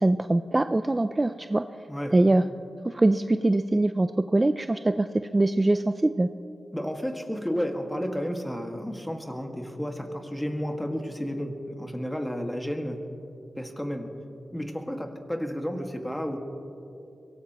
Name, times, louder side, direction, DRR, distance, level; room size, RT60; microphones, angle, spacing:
voice 1, 0.0-1.6 2.1-2.4 2.8-6.3, right 2 dB, 25° right, 10 dB, 0.4 m, -23 dB
voice 2, 1.9-2.2 6.7-13.1 13.6-14.2 14.5-16.4, equal, 10° left, 4 dB, 1.9 m, -32 dB
23.0 x 18.0 x 3.1 m, 2.7 s
cardioid pair, 50°, 0 cm